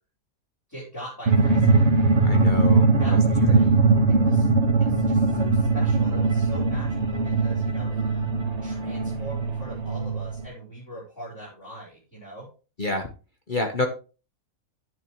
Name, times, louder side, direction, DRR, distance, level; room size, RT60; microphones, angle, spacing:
voice 1, 0.7-1.9 3.0-3.8 4.1-4.5 4.8-8.3 8.6-12.5, right 1 dB, 15° left, -8 dB, 5.0 m, -41 dB
sound 1, 1.3-10.4, right 3 dB, 50° right, 1.9 m, -21 dB
voice 2, 2.2-3.2 3.5-3.8 12.8-13.1 13.5-13.9, left 2 dB, 35° left, 4 dB, 1.1 m, -29 dB
10.5 x 9.5 x 3.1 m, 0.34 s
omnidirectional pair, 1.5 m